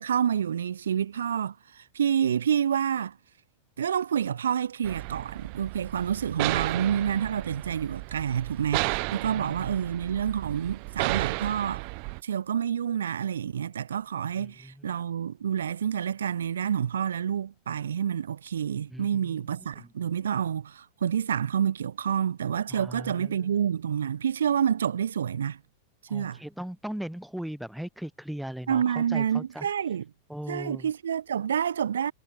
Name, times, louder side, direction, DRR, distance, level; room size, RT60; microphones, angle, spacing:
voice 1, 0.0-3.1 3.8-11.8 12.2-25.6 26.1-26.4 28.7-30.0 30.5-32.1, right 8 dB, 65° right, 1.9 m, -28 dB
sound 1, 4.8-12.2, right 40 dB or more, 45° right, 0.7 m, -33 dB
voice 2, 14.4-14.9 18.9-19.4 19.8-19.9 22.7-23.4 26.1-29.7 30.3-30.9, equal, ahead, 3.5 m, -38 dB
figure-of-eight pair, 90°, 0 cm